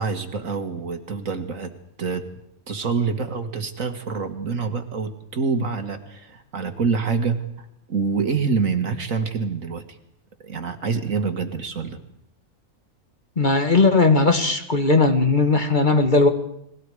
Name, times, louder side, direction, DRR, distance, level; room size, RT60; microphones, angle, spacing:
voice 1, 0.0-1.7 2.0-2.3 2.7-9.8 10.4-12.0, right 5 dB, 70° right, 7 dB, 2.1 m, -26 dB
voice 2, 13.4-16.3, left 3 dB, 35° left, 6 dB, 1.8 m, -18 dB
30.0 x 21.5 x 4.9 m, 0.77 s
omnidirectional pair, 1.5 m